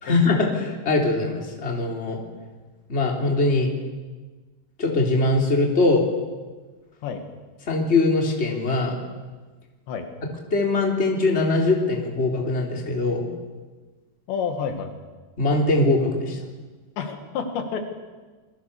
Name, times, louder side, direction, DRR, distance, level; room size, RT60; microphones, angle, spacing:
voice 1, 0.0-2.2 2.9-3.7 4.8-6.0 7.7-9.0 10.5-13.3 15.4-16.4, left 2 dB, 15° left, 0 dB, 3.3 m, -22 dB
voice 2, 14.3-14.9 17.0-17.8, left 6 dB, 80° left, 6 dB, 4.2 m, -29 dB
28.5 x 21.5 x 6.9 m, 1.3 s
omnidirectional pair, 5.0 m